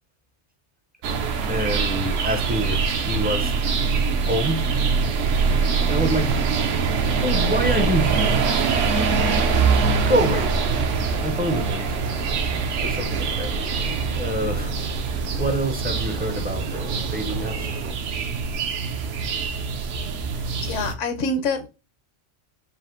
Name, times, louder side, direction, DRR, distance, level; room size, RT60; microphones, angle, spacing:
sound 1, 1.0-20.9, right 5 dB, 75° right, 1.0 m, -23 dB
voice 1, 1.5-3.6 4.2-4.8 5.9-6.4 7.2-8.4 10.1-10.6 11.2-12.0 12.8-13.9 14.1-14.7 15.4-17.7, equal, 15° right, 0.3 m, -26 dB
sound 2, 12.1-17.9, right 3 dB, 55° right, 0.6 m, -34 dB
voice 2, 20.6-21.7, left 3 dB, 75° left, 1.1 m, -25 dB
4.2 x 2.5 x 3.7 m
omnidirectional pair, 1.3 m